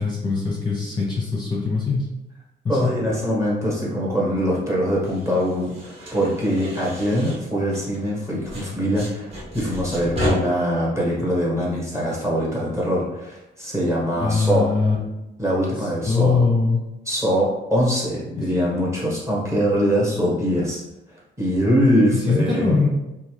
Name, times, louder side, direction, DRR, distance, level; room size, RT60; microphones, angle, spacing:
voice 1, 0.0-2.1 2.6-2.9 14.2-15.0 15.8-16.8 18.4-18.5 22.1-22.9, left 4 dB, 20° left, -4 dB, 0.8 m, -22 dB
voice 2, 2.7-14.7 15.4-16.4 17.1-20.8 21.4-22.6, equal, 15° right, -5 dB, 1.2 m, -23 dB
sound 1, 5.0-8.2 8.5-10.3, equal, 35° right, 1.2 m, -33 dB
2.7 x 2.4 x 3.2 m, 0.96 s
cardioid pair, 90°, 20 cm